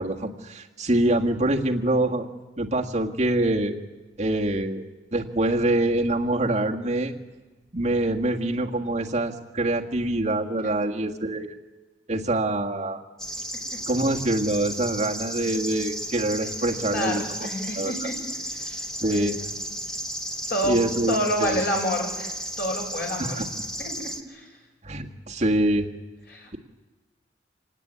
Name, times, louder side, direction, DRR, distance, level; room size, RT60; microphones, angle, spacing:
voice 1, 0.0-2.2 2.6-3.8 4.2-4.8 5.1-7.1 7.7-11.5 12.1-13.0 13.9-17.5 17.8-17.9 19.0-19.4 20.6-21.1 21.4-21.6 23.2-23.4 24.8-25.9, right 1 dB, 35° right, 0 dB, 1.7 m, -25 dB
sound 1, 13.2-24.2, equal, 5° left, 1.3 m, -34 dB
voice 2, 16.6-18.2 18.6-19.5 20.5-20.8 21.1-23.4 23.8-24.4 26.3-26.6, equal, 55° left, 0 dB, 7.0 m, -29 dB
27.0 x 17.5 x 9.7 m, 1.2 s
head